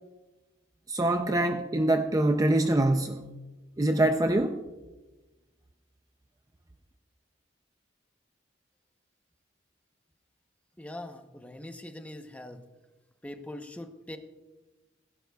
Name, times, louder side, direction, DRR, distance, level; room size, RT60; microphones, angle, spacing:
voice 1, 0.9-3.3 3.8-4.6, right 1 dB, 20° right, 0.5 m, -24 dB
voice 2, 10.8-12.6 13.2-14.2, left 1 dB, 5° left, 0.8 m, -42 dB
17.0 x 17.0 x 2.3 m
head